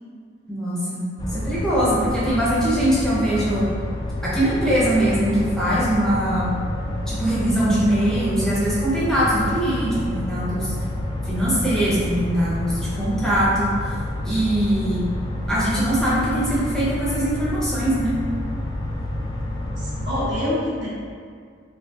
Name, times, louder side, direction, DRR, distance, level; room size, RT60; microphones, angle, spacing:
voice 1, 0.5-3.7 4.2-6.5 7.1-10.7 11.2-13.7 14.2-15.1 15.5-18.1, right 1 dB, 5° left, -10 dB, 1.0 m, -22 dB
sound 1, 1.2-20.3, left 1 dB, 25° left, 0.4 m, -28 dB
voice 2, 19.7-20.9, left 1 dB, 65° right, -8 dB, 1.0 m, -26 dB
5.7 x 2.3 x 2.7 m, 2.1 s
head